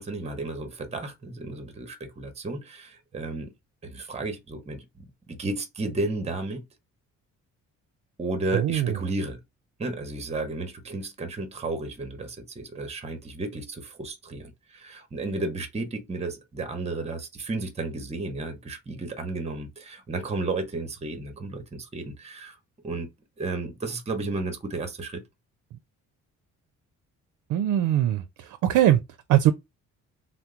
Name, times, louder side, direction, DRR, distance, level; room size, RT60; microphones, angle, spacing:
voice 1, 0.0-3.5 3.8-6.6 8.2-9.4 9.8-22.5 22.8-23.1 23.4-25.2, right 3 dB, 20° right, 0.8 m, -33 dB
voice 2, 8.5-9.0 27.5-29.0 29.3-29.5, right 12 dB, 75° right, 0.5 m, -21 dB
2.8 x 2.0 x 3.6 m
cardioid pair, 90°, 30 cm